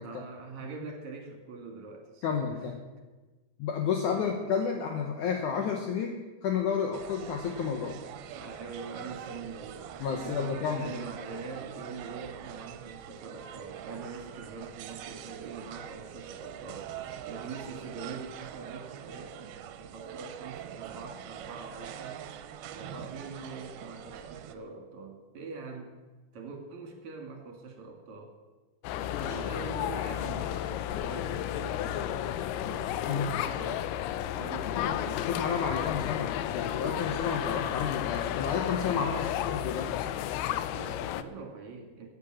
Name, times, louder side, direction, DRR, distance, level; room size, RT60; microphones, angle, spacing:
voice 1, 0.0-2.5 4.1-4.3 8.3-16.9 17.3-22.2 22.7-25.9 26.3-28.3 29.2-33.9 34.4-35.3 39.1-39.6 40.7-42.1, right 4 dB, 55° right, 3 dB, 3.0 m, -43 dB
voice 2, 2.2-2.8 3.6-8.0 10.0-10.9 29.1-29.3 33.1-33.3 34.8-34.9 35.3-39.9, left 6 dB, 70° left, 3 dB, 2.0 m, -31 dB
sound 1, 6.9-24.6, right 10 dB, 80° right, 2.6 m, -44 dB
sound 2, 28.8-41.2, left 12 dB, 85° left, 2.7 m, -32 dB
15.0 x 8.6 x 7.6 m, 1.2 s
omnidirectional pair, 4.5 m